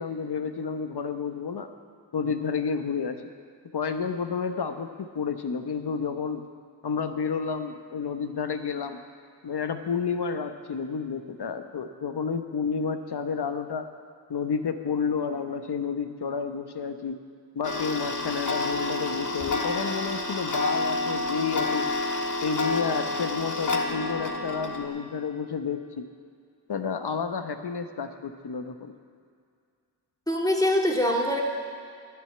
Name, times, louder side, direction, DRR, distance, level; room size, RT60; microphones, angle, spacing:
voice 1, 0.0-1.7 2.1-3.3 3.7-6.4 6.8-9.0 9.4-13.9 14.3-17.2 17.5-21.9 22.4-26.0 26.7-28.9, left 5 dB, 55° left, 8 dB, 1.1 m, -30 dB
Tick-tock, 17.6-24.9, left 2 dB, 40° left, 1.6 m, -29 dB
voice 2, 30.3-31.4, left 1 dB, 10° left, -1 dB, 2.4 m, -23 dB
11.0 x 7.1 x 8.9 m, 2.2 s
cardioid pair, 45°, 46 cm